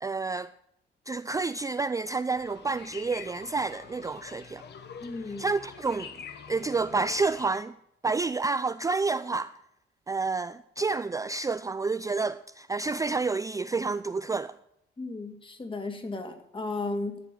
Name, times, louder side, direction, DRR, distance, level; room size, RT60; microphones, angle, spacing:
voice 1, 0.0-0.5 1.1-4.6 5.3-6.1 6.5-7.7 8.0-9.5 10.1-14.6, right 4 dB, 15° right, 0.4 m, -29 dB
sound 1, 2.3-7.6, left 7 dB, 60° left, 1.4 m, -45 dB
voice 2, 5.0-5.5 15.0-17.2, left 3 dB, 25° left, 2.2 m, -34 dB
14.0 x 6.1 x 8.9 m
cardioid pair, 90°, 20 cm